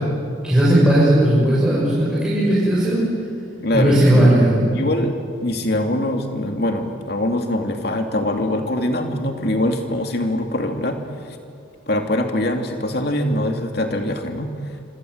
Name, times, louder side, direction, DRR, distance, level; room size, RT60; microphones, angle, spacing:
voice 1, 0.4-3.0 3.7-4.7, right 1 dB, 5° right, -9 dB, 6.9 m, -16 dB
voice 2, 3.6-4.3 4.7-5.1 5.4-11.4 11.9-14.5, left 1 dB, 55° left, 4 dB, 2.7 m, -23 dB
26.5 x 26.0 x 8.1 m, 2.3 s
head